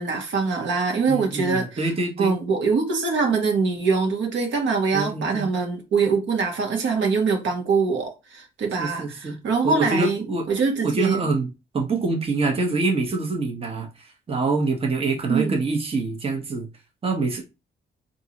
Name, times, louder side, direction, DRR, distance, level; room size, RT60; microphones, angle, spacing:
voice 1, 0.0-1.9 2.2-11.2 15.3-15.6, right 4 dB, 70° right, 1.2 m, -23 dB
voice 2, 1.1-2.3 4.9-5.5 8.8-9.4 9.6-10.4 10.8-13.9 14.3-16.7 17.0-17.4, right 3 dB, 30° right, 1.0 m, -25 dB
3.7 x 2.7 x 2.9 m
cardioid pair, 90°, 20 cm